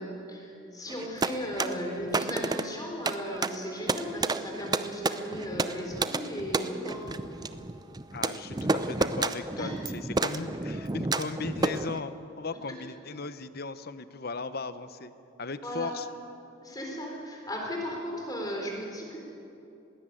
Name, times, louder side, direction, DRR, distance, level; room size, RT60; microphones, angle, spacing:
voice 1, 0.0-7.4 9.6-9.7 15.6-16.0 16.6-19.2, equal, 20° left, 0 dB, 4.0 m, -36 dB
sound 1, 0.9-12.0, right 3 dB, 20° right, 0.5 m, -31 dB
voice 2, 8.1-15.1 15.4-16.1, left 4 dB, 50° left, 13 dB, 0.8 m, -37 dB
21.0 x 16.5 x 9.1 m, 2.8 s
head